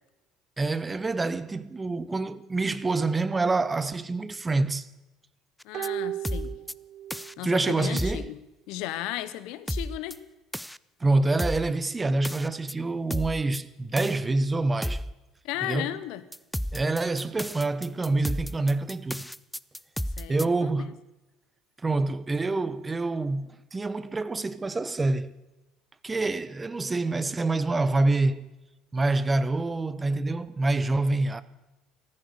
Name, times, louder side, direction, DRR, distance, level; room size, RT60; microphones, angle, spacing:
voice 1, 0.6-4.9 7.4-8.3 11.0-15.0 15.6-15.9 16.7-19.3 20.3-21.0 21.8-25.3 26.0-28.4 28.9-31.4, right 2 dB, 20° right, 0.9 m, -26 dB
voice 2, 5.6-6.6 7.4-8.4 8.7-10.2 15.4-16.2 20.2-20.8, left 14 dB, 65° left, 1.0 m, -35 dB
sound 1, 5.6-5.9 6.2-6.7 7.1-7.3 8.0-8.3 9.7-10.1 10.5-10.8 11.4-11.7 12.2-12.7 13.1-13.6 14.0-14.2 14.8-15.1 16.3-20.4, equal, ahead, 0.5 m, -32 dB
sound 2, 5.7-7.4 7.7-7.8, right 12 dB, 55° right, 0.5 m, -35 dB
14.5 x 14.0 x 6.6 m
hypercardioid pair, 60°, 0 cm